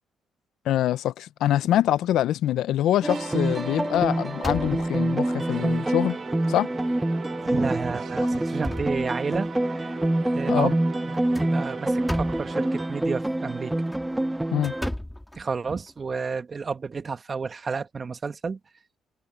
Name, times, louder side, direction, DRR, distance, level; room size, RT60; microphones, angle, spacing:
voice 1, 0.6-6.2 6.5-6.7 10.5-10.7 14.5-14.7, left 12 dB, 75° left, 0.7 m, -24 dB
sound 1, 2.0-2.5 3.0-3.2 3.6-5.2 5.9-6.0 6.4-6.5 7.4-7.7 8.1-9.6 11.1-12.6 13.7-15.9, left 1 dB, 5° left, 2.0 m, -37 dB
sound 2, 3.0-14.9, right 1 dB, 10° right, 1.3 m, -26 dB
sound 3, 3.0-13.1, right 8 dB, 55° right, 4.3 m, -41 dB
voice 2, 7.4-9.9 10.3-10.7 11.0-13.8 15.3-18.6, right 5 dB, 35° right, 1.5 m, -31 dB
cardioid pair, 85°, 0 cm